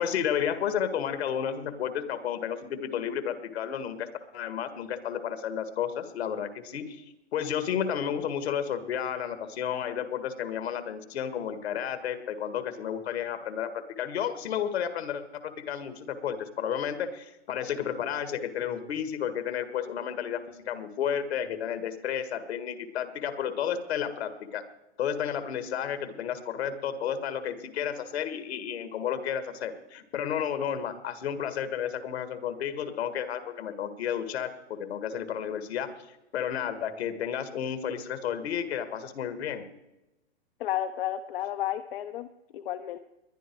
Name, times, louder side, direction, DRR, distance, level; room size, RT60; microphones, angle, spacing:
voice 1, 0.0-4.1 4.3-24.6 25.0-35.9 36.3-39.7, left 8 dB, 75° left, 10 dB, 2.0 m, -32 dB
voice 2, 40.6-42.3 42.5-43.0, left 12 dB, 55° left, 8 dB, 0.8 m, -32 dB
21.0 x 11.0 x 4.7 m, 0.97 s
hypercardioid pair, 140°, 32 cm